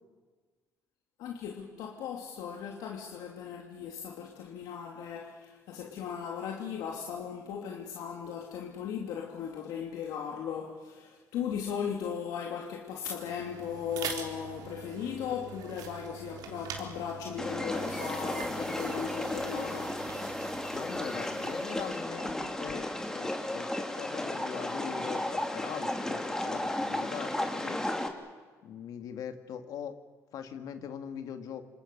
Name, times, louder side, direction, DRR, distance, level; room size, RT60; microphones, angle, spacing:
voice 1, 1.2-20.0, left 8 dB, 85° left, 2.9 m, -37 dB
sound 1, 13.1-23.0, right 7 dB, 80° right, 3.7 m, -44 dB
sound 2, 17.4-28.1, left 1 dB, 10° left, 2.7 m, -34 dB
voice 2, 20.7-27.8 28.6-29.9 30.3-31.6, left 8 dB, 70° left, 2.3 m, -41 dB
27.5 x 27.5 x 6.9 m
cardioid pair, 115°, 6 cm